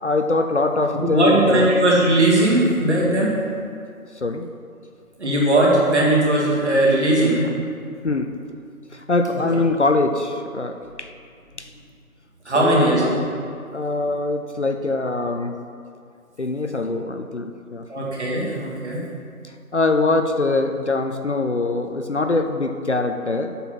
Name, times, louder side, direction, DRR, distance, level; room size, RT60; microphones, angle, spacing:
voice 1, 0.0-1.7 4.2-4.5 8.0-8.3 8.9-11.1 11.6-11.7 12.6-13.1 13.7-15.6 16.4-17.9 19.7-23.6, left 3 dB, 55° left, 6 dB, 0.5 m, -23 dB
voice 2, 1.0-3.3 5.2-7.5 12.5-13.2 17.9-19.0, right 1 dB, 50° right, -4 dB, 2.2 m, -18 dB
8.1 x 5.5 x 5.9 m, 2.3 s
figure-of-eight pair, 165°, 43 cm